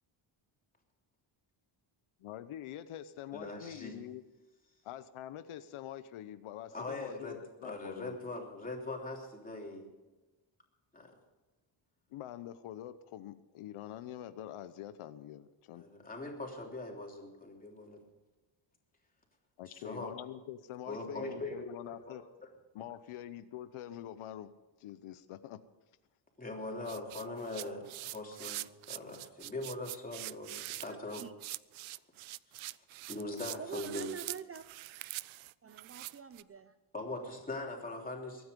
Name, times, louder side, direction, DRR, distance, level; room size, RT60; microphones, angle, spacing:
voice 1, 2.2-4.2 4.8-8.2 12.1-15.9 19.6-22.2 22.7-24.5 24.8-25.6, left 11 dB, 85° left, 13 dB, 0.9 m, -45 dB
voice 2, 3.3-4.0 6.7-9.9 10.9-11.1 15.7-18.0 19.7-20.1 20.9-22.2 26.4-31.2 33.1-34.1 36.9-38.4, left 2 dB, 15° left, 0 dB, 3.3 m, -41 dB
sound 1, 26.9-36.4, right 17 dB, 75° right, 0.5 m, -44 dB
voice 3, 30.9-31.3 33.6-34.6 35.6-36.7, right 7 dB, 30° right, 11 dB, 0.5 m, -45 dB
23.0 x 9.6 x 5.3 m, 1.1 s
cardioid pair, 125°, 48 cm